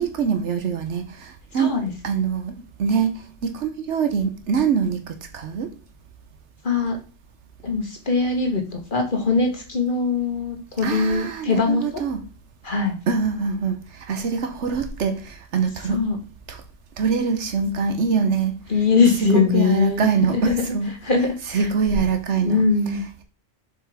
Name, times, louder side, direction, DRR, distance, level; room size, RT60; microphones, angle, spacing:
voice 1, 0.0-1.7 2.0-5.7 10.8-12.2 13.1-16.0 16.5-16.6 17.0-18.6 19.2-20.9 21.5-22.6, right 5 dB, 80° right, 1.2 m, -24 dB
voice 2, 1.5-1.9 6.6-7.0 7.6-12.0 12.6-13.0 15.8-16.2 18.7-20.7 21.0-21.7 22.4-23.1, left 4 dB, 45° left, 1.6 m, -22 dB
7.3 x 5.4 x 3.5 m
omnidirectional pair, 1.2 m